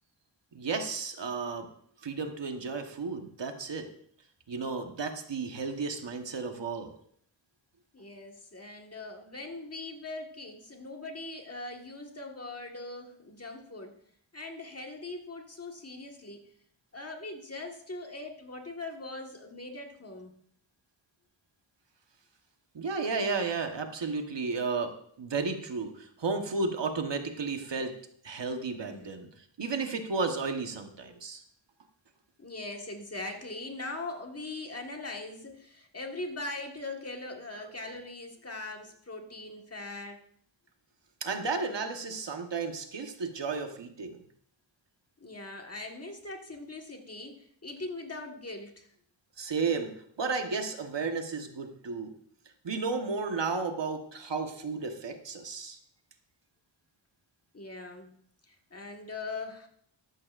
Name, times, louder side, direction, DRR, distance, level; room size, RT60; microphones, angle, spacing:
voice 1, 0.5-1.7 2.0-3.9 4.5-6.9 22.7-27.9 28.2-29.3 29.6-31.4 41.2-44.2 49.4-52.1 52.6-55.8, right 4 dB, 65° right, 5 dB, 1.3 m, -33 dB
voice 2, 7.9-14.0 14.3-16.4 16.9-20.3 27.6-27.8 28.9-29.0 32.4-40.2 45.2-48.9 57.5-58.1 58.4-59.7, left 2 dB, 30° left, 2 dB, 1.6 m, -41 dB
13.5 x 12.0 x 2.5 m, 0.64 s
wide cardioid pair, 110°, 46 cm